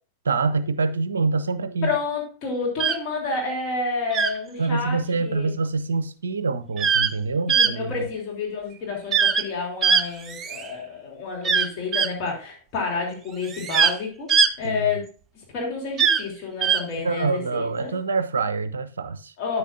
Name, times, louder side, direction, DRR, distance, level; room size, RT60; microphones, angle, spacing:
voice 1, 0.2-2.0 4.6-8.1 14.6-14.9 17.0-19.3, right 4 dB, 70° right, 0.5 m, -25 dB
voice 2, 1.8-5.5 7.5-15.1 15.5-17.9 19.4-19.6, left 4 dB, 40° left, 2.8 m, -29 dB
sound 1, 2.8-3.0 4.1-4.4 6.8-7.1 7.5-7.7 9.1-9.4 9.8-10.7 11.4-12.1 13.4-13.9 14.3-14.5 16.0-16.2 16.6-16.8, right 6 dB, 25° right, 0.5 m, -20 dB
9.4 x 8.2 x 2.4 m
figure-of-eight pair, 90°, 0 cm